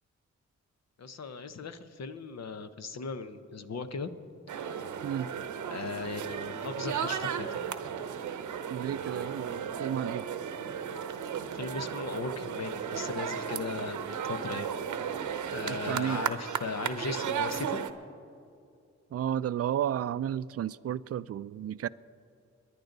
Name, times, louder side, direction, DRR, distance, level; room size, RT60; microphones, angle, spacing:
voice 1, 1.0-4.1 5.7-7.6 11.5-14.7 15.5-17.9, left 4 dB, 60° left, 10 dB, 0.9 m, -38 dB
sound 1, 4.5-17.9, right 8 dB, 80° right, 0.8 m, -35 dB
voice 2, 8.7-10.3 15.7-16.2 19.1-21.9, right 10 dB, 55° right, 18 dB, 0.4 m, -32 dB
23.0 x 10.5 x 4.0 m, 2.4 s
cardioid pair, 55°, 30 cm